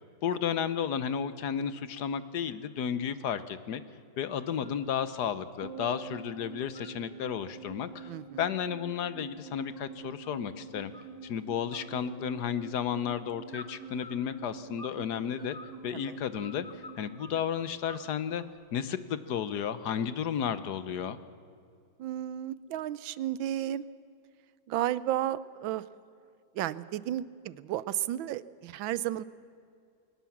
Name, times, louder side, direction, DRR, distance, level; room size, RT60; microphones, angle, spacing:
voice 1, 0.2-3.8 4.2-8.1 8.4-10.9 11.2-15.6 15.8-16.7 17.0-18.4 18.7-21.2, left 8 dB, 60° left, 13 dB, 1.3 m, -33 dB
sound 1, 4.4-4.8 5.2-6.1 6.4-7.3 7.7-10.5 10.9-11.4 11.7-12.7 13.5-15.0 15.3-17.4 17.9-18.6, left 2 dB, 20° left, 1.6 m, -51 dB
sound 2, 5.6-18.1 18.4-18.5, right 4 dB, 50° right, 3.0 m, -47 dB
voice 2, 8.1-8.4 15.9-16.2 22.0-23.8 24.7-25.8 26.5-29.2, right 12 dB, 80° right, 17 dB, 1.4 m, -33 dB
21.5 x 19.0 x 7.2 m, 2.4 s
omnidirectional pair, 2.1 m